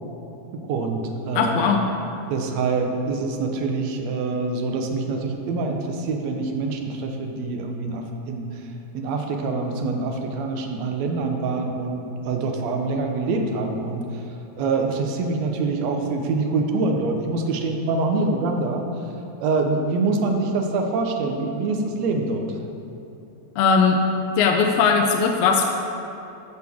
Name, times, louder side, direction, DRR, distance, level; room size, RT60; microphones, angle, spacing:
voice 1, 0.7-1.6 2.3-8.5 8.9-14.0 14.6-18.8 19.4-22.5, right 3 dB, 70° right, 3 dB, 2.0 m, -25 dB
voice 2, 1.3-1.8 23.6-24.0 24.4-25.6, left 5 dB, 75° left, 3 dB, 1.6 m, -19 dB
13.5 x 6.5 x 3.5 m, 2.8 s
omnidirectional pair, 3.4 m